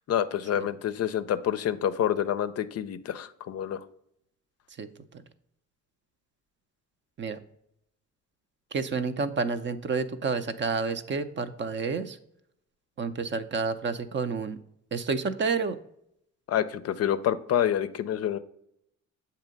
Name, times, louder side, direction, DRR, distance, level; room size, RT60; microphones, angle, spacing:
voice 1, 0.0-3.8 16.5-18.4, left 10 dB, 55° left, 13 dB, 0.5 m, -28 dB
voice 2, 4.8-5.2 7.2-7.4 8.7-12.2 13.0-14.6 14.9-15.8, right 4 dB, 40° right, 11 dB, 0.5 m, -30 dB
7.2 x 2.8 x 5.1 m, 0.75 s
cardioid pair, 90°, 30 cm